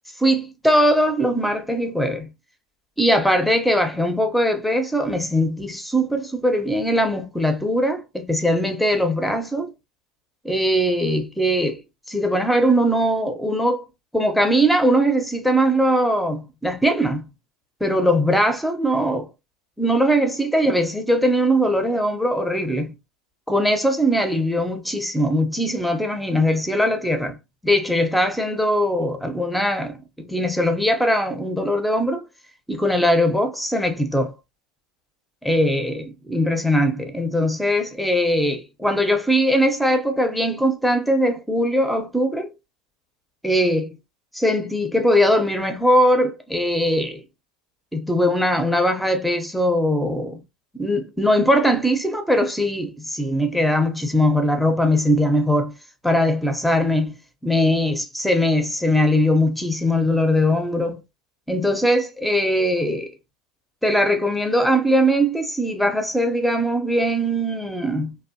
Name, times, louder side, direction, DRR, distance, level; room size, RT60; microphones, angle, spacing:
voice 1, 0.2-2.3 3.0-9.7 10.4-11.8 12.1-13.8 14.1-17.3 17.8-19.3 19.8-22.9 23.5-27.4 27.6-32.3 32.7-34.4 35.4-42.5 43.4-44.0 44.3-47.2 47.9-50.4 50.7-55.7 56.0-57.1 57.4-61.0 61.5-63.1 63.8-68.2, equal, ahead, 0.6 m, -20 dB
2.6 x 2.0 x 2.6 m
hypercardioid pair, 95°, 3 cm